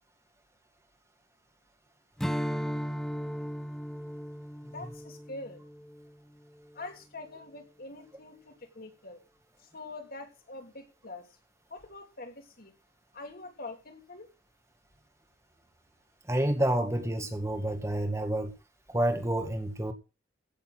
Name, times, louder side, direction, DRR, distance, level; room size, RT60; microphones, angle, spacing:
Strum, 2.2-6.9, equal, ahead, 0.6 m, -36 dB
voice 1, 4.7-5.6 6.7-9.2 9.7-11.3 11.7-12.7 13.1-14.3, left 2 dB, 50° left, 3.1 m, -44 dB
voice 2, 16.3-18.5 18.9-19.9, right 1 dB, 15° right, 1.8 m, -29 dB
16.0 x 7.1 x 6.2 m
head